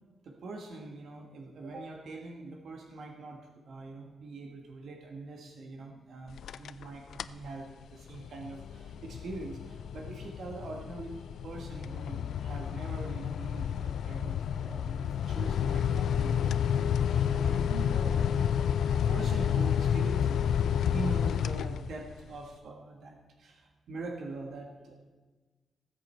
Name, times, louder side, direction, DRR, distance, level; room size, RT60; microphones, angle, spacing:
voice 1, 0.2-24.9, right 2 dB, 75° right, 2 dB, 1.6 m, -43 dB
sound 1, 6.3-6.8 7.1-7.5 7.9-22.2, left 8 dB, 85° left, 0.4 m, -30 dB
19.0 x 7.7 x 4.5 m, 1.3 s
wide cardioid pair, 125°, 0 cm